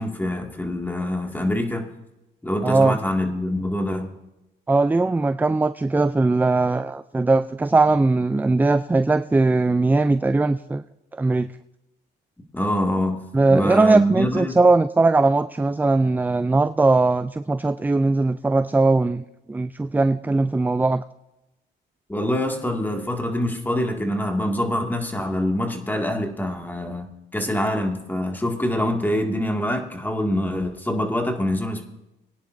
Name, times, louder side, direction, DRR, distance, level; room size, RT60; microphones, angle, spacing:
voice 1, 0.0-1.9 2.4-4.1 12.5-14.6 22.1-31.8, equal, 10° left, 2 dB, 2.1 m, -25 dB
voice 2, 2.6-3.0 4.7-10.8 11.1-11.5 13.3-21.0, right 3 dB, 10° right, 13 dB, 0.3 m, -20 dB
21.5 x 10.5 x 2.6 m, 0.94 s
cardioid pair, 90°, 20 cm